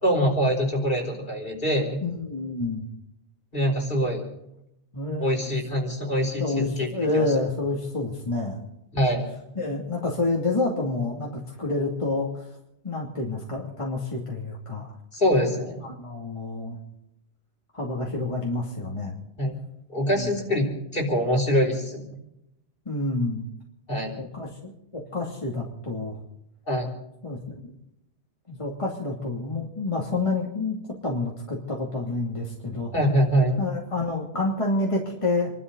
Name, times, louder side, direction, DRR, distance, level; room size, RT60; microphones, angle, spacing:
voice 1, 0.0-2.0 3.5-4.3 5.2-7.3 8.9-9.2 15.1-15.8 19.4-19.6 19.9-22.1 23.9-24.1 26.7-26.9 32.9-33.6, equal, 50° left, 0 dB, 4.6 m, -24 dB
voice 2, 2.0-2.8 4.9-5.5 6.4-8.6 9.6-11.3 11.6-12.5 12.8-14.9 15.8-16.8 17.7-19.1 20.1-20.3 22.9-23.5 24.2-26.2 27.2-27.5 28.5-30.7 31.0-32.9 33.6-35.5, left 2 dB, 25° left, -2 dB, 2.8 m, -28 dB
28.0 x 12.5 x 4.0 m, 0.82 s
omnidirectional pair, 1.2 m